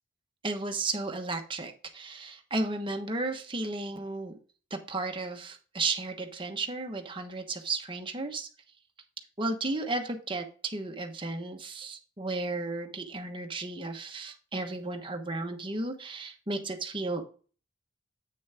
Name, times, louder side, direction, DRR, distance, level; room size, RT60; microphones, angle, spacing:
voice 1, 0.4-4.4 4.7-8.5 9.4-17.3, right 2 dB, 25° right, 4 dB, 1.2 m, -34 dB
8.7 x 6.2 x 3.5 m, 0.39 s
head